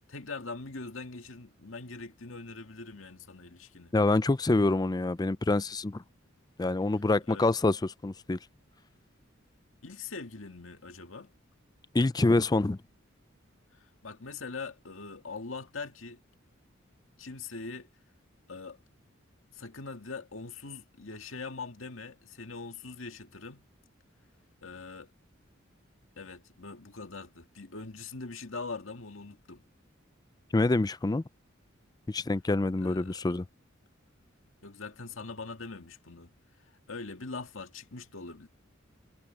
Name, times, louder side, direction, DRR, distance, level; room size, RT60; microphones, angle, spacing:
voice 1, 0.1-3.9 7.3-7.5 9.8-11.3 13.7-16.2 17.2-17.9 18.5-18.8 19.5-23.6 24.6-25.1 26.2-29.6 32.8-33.3 34.6-36.3 36.9-38.5, left 4 dB, 90° left, 2.0 m, -42 dB
voice 2, 3.9-6.0 6.6-8.4 11.9-12.8 30.5-31.2 32.1-33.5, left 2 dB, 20° left, 0.4 m, -26 dB
head